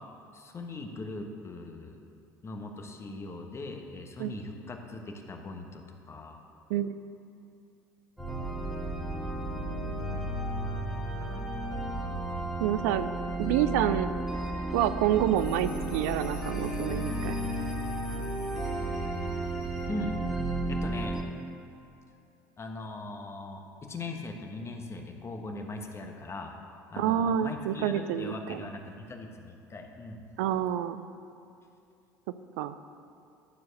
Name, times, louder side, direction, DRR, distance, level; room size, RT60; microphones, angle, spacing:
voice 1, 0.3-2.0 2.4-6.4 11.2-11.5 19.9-20.2 20.7-21.2 22.6-26.5 26.9-30.2, left 2 dB, 30° left, 3 dB, 1.3 m, -40 dB
sound 1, 8.2-21.2, right 1 dB, ahead, 2.1 m, -33 dB
voice 2, 12.6-13.1 13.4-14.1 14.7-17.4 27.0-28.7 30.4-31.0 32.6-32.8, right 11 dB, 75° right, 12 dB, 0.4 m, -28 dB
sound 2, 15.3-19.4, left 5 dB, 90° left, 2.2 m, -51 dB
11.5 x 4.6 x 6.5 m, 2.6 s
hypercardioid pair, 70°, 9 cm